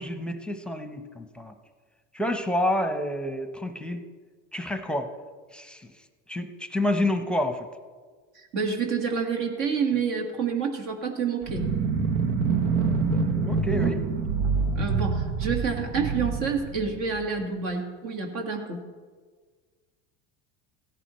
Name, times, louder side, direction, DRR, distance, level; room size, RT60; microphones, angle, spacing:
voice 1, 0.0-1.5 2.1-4.0 4.5-5.1 5.5-5.9 6.3-7.7 12.9-14.1, left 1 dB, 5° left, 7 dB, 0.9 m, -29 dB
voice 2, 8.4-11.7 14.8-18.8, right 5 dB, 60° right, 2 dB, 1.9 m, -28 dB
sound 1, 11.4-17.4, right 4 dB, 85° right, 1.2 m, -26 dB
16.5 x 11.0 x 3.1 m, 1.5 s
supercardioid pair, 95°, 35 cm